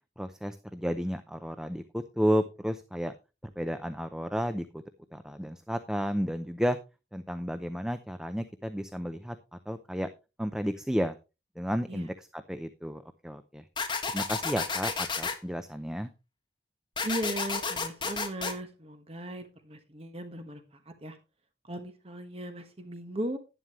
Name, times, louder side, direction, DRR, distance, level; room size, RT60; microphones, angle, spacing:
voice 1, 0.2-3.1 3.4-4.8 5.1-6.8 7.1-10.1 10.4-11.2 11.6-13.6 14.1-16.1, equal, 5° right, 9 dB, 0.6 m, -32 dB
sound 1, 13.8-15.4 17.0-18.5, left 4 dB, 25° left, 1.4 m, -31 dB
voice 2, 17.0-20.6 21.0-21.2 21.6-23.4, right 1 dB, 35° right, 7 dB, 1.3 m, -37 dB
11.0 x 11.0 x 3.1 m, 0.29 s
head